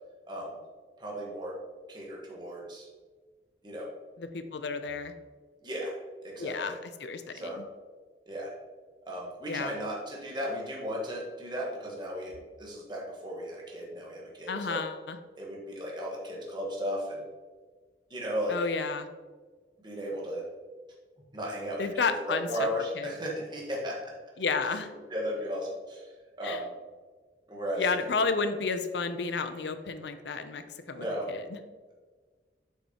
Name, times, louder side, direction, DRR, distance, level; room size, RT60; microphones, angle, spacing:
voice 1, 0.3-0.6 1.0-1.6 1.9-2.9 3.6-3.9 5.6-6.0 6.2-6.8 7.3-7.6 8.3-8.5 9.1-14.8 15.4-17.2 18.1-18.6 19.8-20.4 21.3-24.1 25.1-26.0 26.4-26.7 27.5-27.8 30.9-31.3, equal, 25° right, -3 dB, 1.3 m, -35 dB
voice 2, 4.2-5.1 6.4-7.6 9.5-9.7 14.5-15.2 18.5-19.1 21.8-22.7 23.0-23.1 24.4-24.9 26.4-26.6 27.8-31.4, left 4 dB, 75° left, 9 dB, 0.6 m, -32 dB
7.2 x 5.5 x 2.9 m, 1.4 s
head